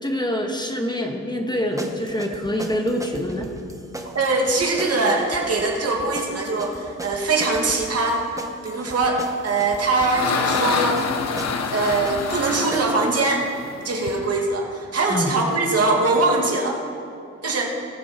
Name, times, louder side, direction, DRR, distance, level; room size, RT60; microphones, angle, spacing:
voice 1, 0.0-3.5 15.1-15.3, equal, 15° left, 2 dB, 1.6 m, -25 dB
sound 1, 1.8-13.2, right 1 dB, 10° right, 1.3 m, -37 dB
voice 2, 4.1-8.2 8.6-11.0 11.7-13.4 13.8-16.8 17.4-17.7, right 3 dB, 55° right, 0 dB, 2.4 m, -22 dB
sound 2, 9.5-14.2, left 5 dB, 60° left, 1.0 m, -27 dB
20.0 x 6.9 x 4.5 m, 2.5 s
supercardioid pair, 60°, 29 cm